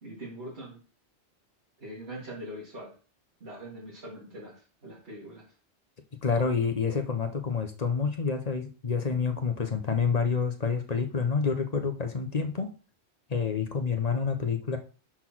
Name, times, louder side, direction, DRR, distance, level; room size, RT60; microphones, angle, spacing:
voice 1, 0.0-0.8 1.8-2.9 3.4-5.4, right 1 dB, 60° right, -7 dB, 2.6 m, -42 dB
voice 2, 6.2-12.7 13.3-14.8, left 5 dB, 40° left, 6 dB, 0.8 m, -28 dB
5.6 x 4.5 x 5.9 m, 0.37 s
omnidirectional pair, 1.2 m